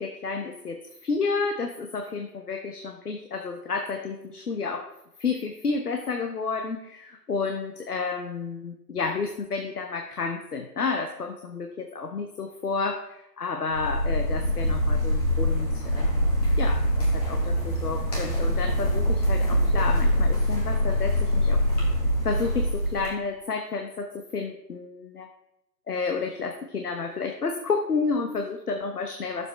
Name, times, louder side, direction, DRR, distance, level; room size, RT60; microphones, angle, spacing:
voice 1, 0.0-4.9 5.2-21.6 22.2-25.3 25.9-29.5, left 4 dB, 65° left, 4 dB, 1.1 m, -31 dB
sound 1, 13.7-23.1, equal, 25° left, 2.0 m, -24 dB
11.0 x 7.2 x 3.4 m, 0.87 s
figure-of-eight pair, 155°, 50 cm